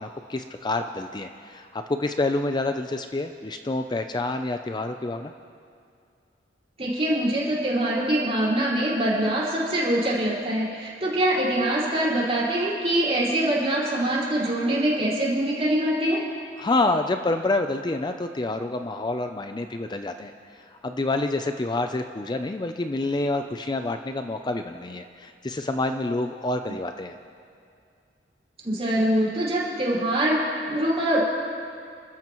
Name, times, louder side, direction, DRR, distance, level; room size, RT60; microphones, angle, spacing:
voice 1, 0.0-5.3 16.6-27.2, left 2 dB, 25° left, 7 dB, 0.4 m, -28 dB
voice 2, 6.8-16.2 28.6-31.2, right 1 dB, 35° right, -6 dB, 4.8 m, -24 dB
29.5 x 13.5 x 3.1 m, 2.4 s
head